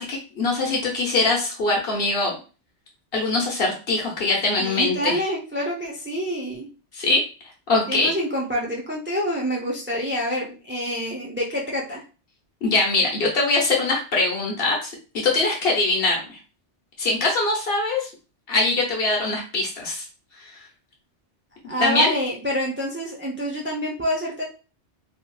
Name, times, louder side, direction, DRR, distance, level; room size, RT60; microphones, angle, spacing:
voice 1, 0.0-2.4 3.1-5.2 6.9-7.2 7.7-8.1 12.6-16.4 17.0-18.1 18.5-20.0 21.8-22.1, left 3 dB, 55° left, -1 dB, 1.1 m, -22 dB
voice 2, 4.6-6.7 7.9-12.0 21.7-24.4, equal, 20° right, -3 dB, 0.3 m, -27 dB
2.9 x 2.7 x 2.3 m, 0.34 s
omnidirectional pair, 1.2 m